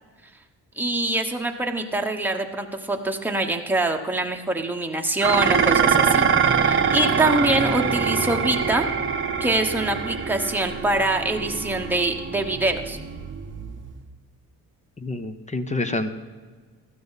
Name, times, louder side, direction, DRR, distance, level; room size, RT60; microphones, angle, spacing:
voice 1, 0.8-8.9 9.4-13.0, right 2 dB, 5° right, 3 dB, 1.1 m, -24 dB
Dishes pots and pans, 5.2-14.0, right 6 dB, 35° right, 1.0 m, -24 dB
voice 2, 15.0-16.1, left 2 dB, 20° left, 9 dB, 0.8 m, -27 dB
14.5 x 12.5 x 4.1 m, 1.4 s
cardioid pair, 115°, 35 cm